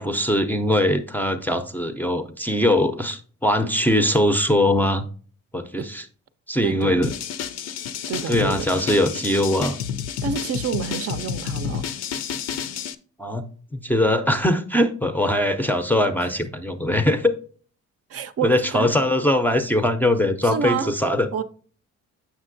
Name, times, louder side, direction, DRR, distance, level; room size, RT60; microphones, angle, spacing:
voice 1, 0.0-5.0 5.5-6.0 6.5-7.1 8.3-9.8 13.2-13.5 13.7-17.3 18.4-21.3, left 1 dB, 5° left, 0.4 m, -21 dB
voice 2, 6.6-7.0 8.1-8.7 10.2-11.9 16.2-16.3 18.1-18.9 20.4-20.9 21.3-21.4, right 7 dB, 50° right, 0.5 m, -28 dB
sound 1, 7.0-12.9, left 8 dB, 60° left, 0.5 m, -30 dB
7.3 x 5.8 x 2.5 m
cardioid pair, 90°, 30 cm